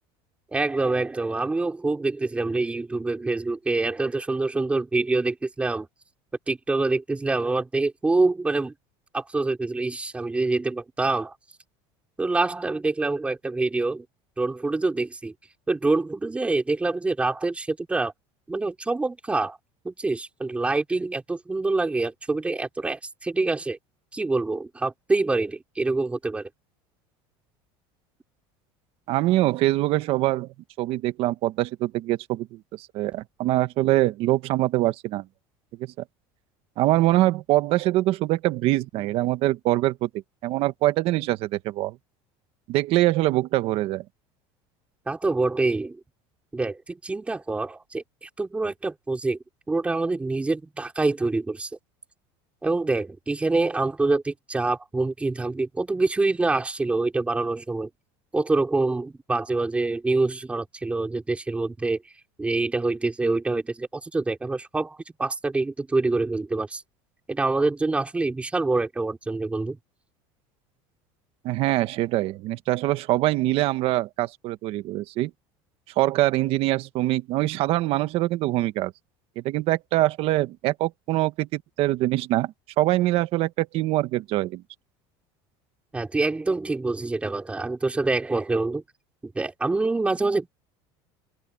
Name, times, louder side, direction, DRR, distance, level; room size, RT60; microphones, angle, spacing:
voice 1, 0.5-5.9 6.5-8.7 9.1-11.3 12.2-14.1 14.4-15.3 15.7-18.1 18.5-19.6 19.8-23.8 24.1-26.5 45.1-46.0 46.5-49.4 49.7-51.7 52.6-57.9 58.3-62.0 62.4-66.8 67.3-69.8 85.9-88.8 89.2-90.5, right 3 dB, 10° right, 3.8 m, -26 dB
voice 2, 29.1-30.5 30.8-35.2 35.8-35.9 36.8-40.1 40.4-42.0 42.7-44.0 71.4-75.3 76.0-78.9 79.4-84.6, right 16 dB, 50° right, 1.3 m, -24 dB
open air
cardioid pair, 150°, 12 cm